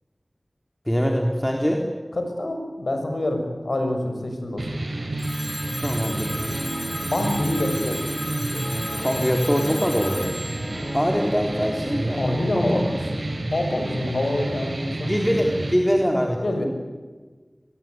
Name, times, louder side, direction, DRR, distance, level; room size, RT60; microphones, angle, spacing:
voice 1, 0.9-1.8 5.8-6.3 9.0-10.3 10.9-12.9 15.1-16.4, equal, 5° left, 1 dB, 3.8 m, -23 dB
voice 2, 2.2-4.8 7.1-8.1 12.2-15.4 16.4-16.7, left 1 dB, 85° left, 5 dB, 6.3 m, -27 dB
sound 1, 4.6-15.7, right 2 dB, 85° right, 4.9 m, -30 dB
Telephone, 5.2-12.0, equal, 10° right, 5.1 m, -35 dB
Guitar, 6.4-12.9, equal, 45° left, 5.8 m, -36 dB
25.0 x 21.0 x 9.4 m, 1.3 s
wide cardioid pair, 45°, 0 cm